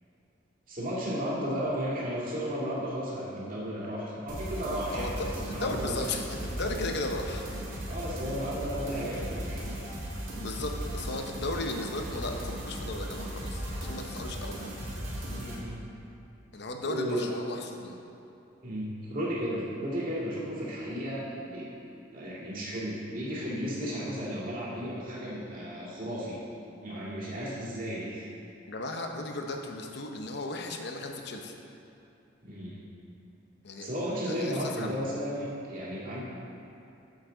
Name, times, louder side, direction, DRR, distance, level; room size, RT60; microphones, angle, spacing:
voice 1, 0.7-6.1 7.8-9.8 10.2-10.3 15.4-15.8 16.8-17.3 18.6-21.7 22.1-26.4 26.8-28.3 32.4-32.9 33.8-36.2, equal, 45° right, -7 dB, 2.0 m, -34 dB
sound 1, 4.3-15.6, equal, 75° right, 1.9 m, -37 dB
voice 2, 4.9-7.4 10.3-14.6 16.5-18.0 28.7-31.5 33.6-33.9 34.3-34.9, left 2 dB, 55° left, 3 dB, 0.7 m, -35 dB
8.9 x 7.1 x 3.8 m, 2.8 s
head